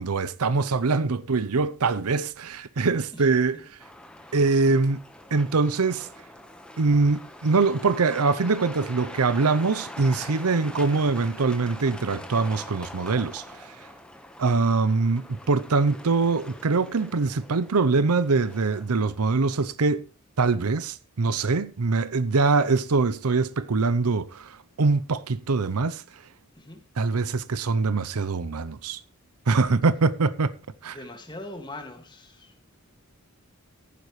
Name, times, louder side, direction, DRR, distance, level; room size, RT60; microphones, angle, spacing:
voice 1, 0.0-3.8 4.3-5.0 5.3-6.1 6.8-13.8 14.4-20.1 20.4-26.2 27.0-29.0 29.5-30.5 30.8-31.0, right 4 dB, 90° right, 0.7 m, -23 dB
Truck, 3.8-19.6, left 1 dB, 5° left, 1.2 m, -44 dB
voice 2, 30.9-32.5, left 1 dB, 20° left, 2.1 m, -41 dB
14.5 x 11.0 x 3.2 m
head